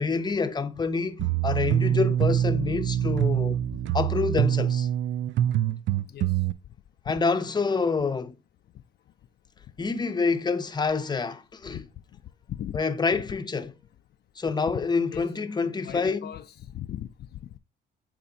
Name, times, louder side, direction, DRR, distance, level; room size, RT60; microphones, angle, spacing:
voice 1, 0.0-3.6 3.9-4.9 7.0-8.3 9.8-11.8 12.7-13.7 14.4-16.3, left 4 dB, 20° left, 0.7 m, -27 dB
sound 1, 1.2-6.5, right 11 dB, 70° right, 0.4 m, -25 dB
voice 2, 12.5-12.8 15.1-15.3 15.8-17.6, left 11 dB, 55° left, 0.4 m, -38 dB
8.6 x 4.2 x 2.7 m
cardioid pair, 90°, 20 cm